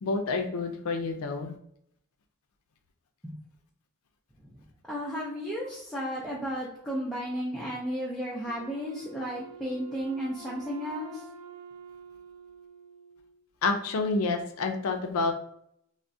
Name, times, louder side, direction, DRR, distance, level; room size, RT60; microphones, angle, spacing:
voice 1, 0.0-1.5 13.6-15.3, left 3 dB, 85° left, 5 dB, 0.4 m, -28 dB
voice 2, 4.9-11.2, equal, ahead, -7 dB, 0.4 m, -34 dB
Wind instrument woodwind instrument, 8.5-13.4, right 5 dB, 85° right, 0.4 m, -48 dB
3.4 x 2.1 x 2.6 m, 0.72 s
head